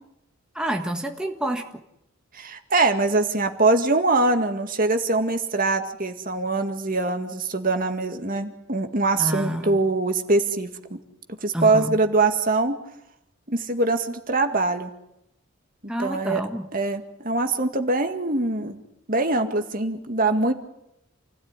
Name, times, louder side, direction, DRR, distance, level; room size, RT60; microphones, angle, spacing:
voice 1, 0.5-1.6 9.2-9.8 11.5-12.0 15.9-16.7, equal, 5° right, 2 dB, 1.7 m, -28 dB
voice 2, 2.3-11.0 11.4-12.8 13.5-14.9 16.0-16.4 16.7-18.8 19.1-20.5, right 3 dB, 40° right, 6 dB, 2.0 m, -23 dB
28.5 x 17.0 x 9.8 m, 0.82 s
head